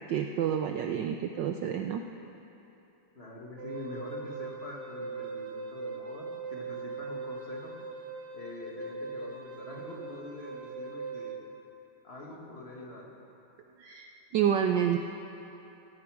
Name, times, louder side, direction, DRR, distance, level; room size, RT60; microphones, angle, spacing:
voice 1, 0.1-2.0 13.8-15.0, right 9 dB, 70° right, 5 dB, 1.1 m, -29 dB
voice 2, 3.1-7.7 8.3-11.4 12.0-13.1, left 2 dB, 30° left, -2 dB, 1.7 m, -44 dB
Wind instrument woodwind instrument, 3.6-11.4, right 4 dB, 55° right, 2.0 m, -40 dB
17.0 x 16.5 x 4.8 m, 3.0 s
omnidirectional pair, 2.4 m